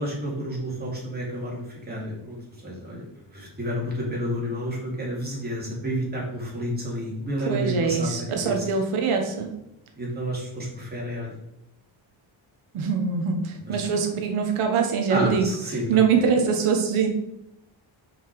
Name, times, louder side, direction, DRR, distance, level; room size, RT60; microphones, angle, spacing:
voice 1, 0.0-8.6 10.0-11.3 13.7-13.8 15.1-15.8, equal, 20° right, -4 dB, 2.6 m, -30 dB
voice 2, 7.4-9.5 12.7-17.1, right 6 dB, 85° right, 3 dB, 1.3 m, -23 dB
5.8 x 5.5 x 4.8 m, 0.82 s
wide cardioid pair, 150°, 48 cm